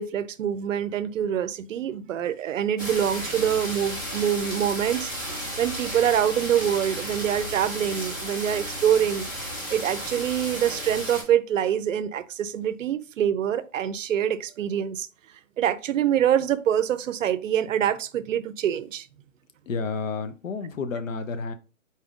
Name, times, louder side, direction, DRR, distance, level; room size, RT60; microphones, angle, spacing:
voice 1, 0.0-9.3 9.7-15.1 15.6-19.1, right 9 dB, 70° right, 0.5 m, -25 dB
sound 1, 2.8-11.2, equal, 15° left, 0.5 m, -33 dB
voice 2, 19.6-21.5, left 4 dB, 75° left, 0.7 m, -30 dB
4.2 x 2.4 x 3.5 m
hypercardioid pair, 160°, 40 cm